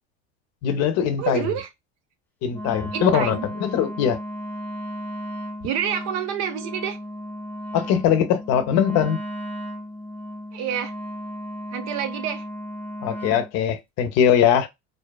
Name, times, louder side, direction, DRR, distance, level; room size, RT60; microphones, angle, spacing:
voice 1, 0.6-1.5 2.4-4.2 7.7-9.2 13.0-14.7, left 9 dB, 55° left, 0.6 m, -21 dB
voice 2, 1.2-1.7 2.9-3.5 5.6-7.0 10.5-10.9 11.7-12.5, right 9 dB, 60° right, 0.8 m, -28 dB
Wind instrument woodwind instrument, 2.5-13.5, equal, 5° left, 0.5 m, -35 dB
2.6 x 2.3 x 2.2 m
supercardioid pair, 120°, 30 cm